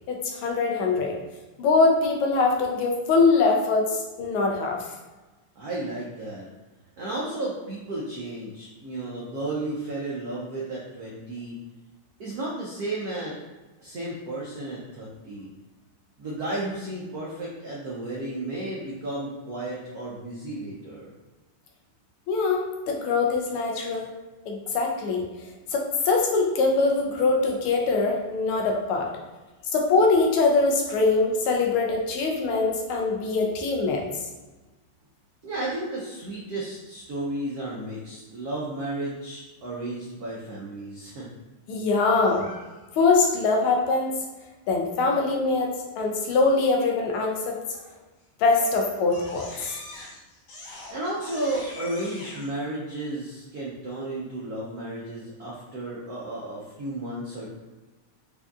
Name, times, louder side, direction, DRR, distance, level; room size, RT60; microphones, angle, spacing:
voice 1, 0.1-1.2 1.6-4.8 22.3-24.1 24.5-25.3 25.7-29.1 29.7-34.0 41.7-42.5 43.0-44.1 44.7-47.6 48.4-49.8, left 3 dB, 80° left, 1 dB, 1.5 m, -23 dB
voice 2, 5.6-6.5 7.0-11.6 12.2-13.3 13.8-15.5 16.2-21.1 35.4-41.3 50.9-57.5, right 1 dB, 80° right, -6 dB, 0.8 m, -33 dB
Crying sobbing, 42.1-43.0 47.7-48.0 48.4-52.5, left 2 dB, 65° left, 1.1 m, -43 dB
4.8 x 2.6 x 2.3 m, 1.2 s
omnidirectional pair, 2.4 m